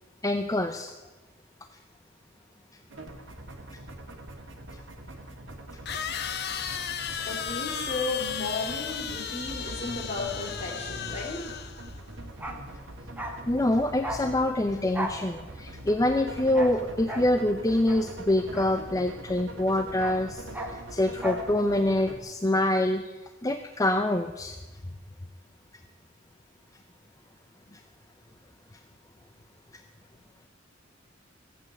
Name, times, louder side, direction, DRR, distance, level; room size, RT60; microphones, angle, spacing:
voice 1, 0.2-0.9 13.5-24.6 27.7-27.8, left 1 dB, 15° left, 7 dB, 0.5 m, -26 dB
sound 1, 2.9-22.2, right 1 dB, 65° right, 1.8 m, -43 dB
sound 2, 4.2-4.3 5.9-12.0, left 8 dB, 55° left, 0.8 m, -35 dB
voice 2, 7.3-11.5, left 3 dB, 30° left, -2 dB, 3.4 m, -34 dB
Bark, 12.3-19.3 19.6-21.5 21.8-21.9, equal, 10° right, 1.2 m, -38 dB
15.0 x 8.4 x 7.8 m, 1.2 s
head